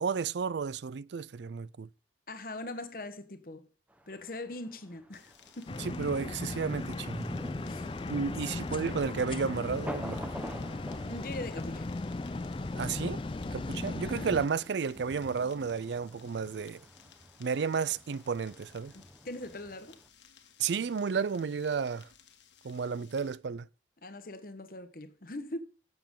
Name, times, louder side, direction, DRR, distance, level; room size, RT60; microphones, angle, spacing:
voice 1, 0.0-1.9 5.8-7.3 8.1-10.2 12.8-13.2 13.5-16.8 17.4-18.9 20.6-22.1 22.6-23.7, right 5 dB, 75° right, 0.4 m, -32 dB
voice 2, 2.3-3.7 4.1-5.9 7.6-7.9 8.3-8.4 11.0-11.9 18.9-20.0 24.0-25.6, left 2 dB, 50° left, 1.2 m, -41 dB
Thunder, 3.9-20.1, equal, 10° right, 0.9 m, -48 dB
sound 1, 5.1-23.4, left 8 dB, 85° left, 1.6 m, -59 dB
sound 2, 5.7-14.5, left 2 dB, 30° left, 0.4 m, -37 dB
18.0 x 7.0 x 3.7 m
head